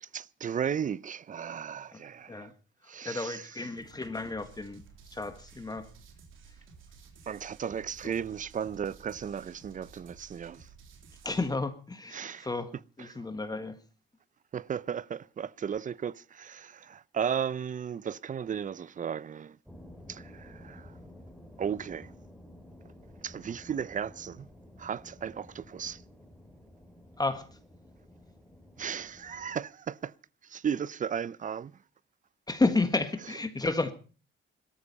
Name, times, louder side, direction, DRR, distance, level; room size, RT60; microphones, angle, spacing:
voice 1, 0.0-2.5 2.9-3.6 7.3-10.7 12.1-12.5 13.0-13.2 14.5-19.6 20.1-20.9 21.6-22.1 23.2-24.5 24.8-26.0 28.8-30.1 30.4-31.7, right 8 dB, 40° right, 0.7 m, -35 dB
voice 2, 3.0-4.8 5.1-5.9 11.2-12.7 13.0-13.7 27.2-27.5 32.5-33.9, left 3 dB, 20° left, 1.6 m, -31 dB
sound 1, 3.8-11.5, right 5 dB, 85° right, 3.4 m, -54 dB
sound 2, 19.7-29.6, left 1 dB, ahead, 3.8 m, -52 dB
17.0 x 13.5 x 5.5 m
cardioid pair, 90°, 20 cm